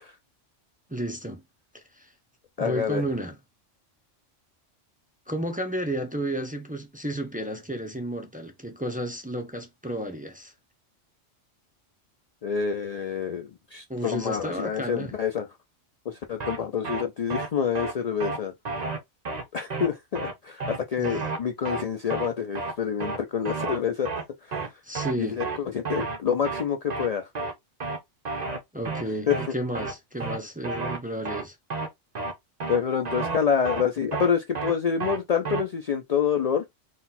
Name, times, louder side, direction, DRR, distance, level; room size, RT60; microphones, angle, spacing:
voice 1, 0.9-1.4 1.7-2.1 2.6-3.4 5.3-10.5 13.9-15.1 21.0-21.2 24.8-25.4 28.7-31.6, right 1 dB, 10° right, 0.6 m, -32 dB
voice 2, 2.6-3.0 12.4-15.5 16.1-18.5 19.5-24.1 24.5-24.6 25.2-27.3 29.3-29.4 32.7-36.6, left 7 dB, 70° left, 0.3 m, -27 dB
sound 1, 16.4-16.6 16.8-17.0 17.3-17.5 17.8-17.9 18.2-18.4 18.7-19.0 19.3-19.4 19.7-19.9 20.2-20.3 20.6-20.8 21.0-21.4 21.7-21.8 22.1-22.3 22.6-22.7 23.0-23.2 23.5-23.8 24.1-24.2 24.5-24.7 25.0-25.1 25.4-25.6 25.9-26.2 26.4-26.6 26.9-27.1 27.4-27.5 27.8-28.0 28.3-28.6 28.9-29.0 29.3-29.5 29.8-29.9 30.2-30.4 30.6-31.0 31.3-31.4 31.7-31.9 32.2-32.3 32.6-32.8 33.1-33.4 33.7-33.8 34.1-34.3 34.6-34.7 35.0-35.2 35.5-35.6, right 3 dB, 40° right, 0.8 m, -31 dB
4.0 x 2.5 x 4.1 m
omnidirectional pair, 1.3 m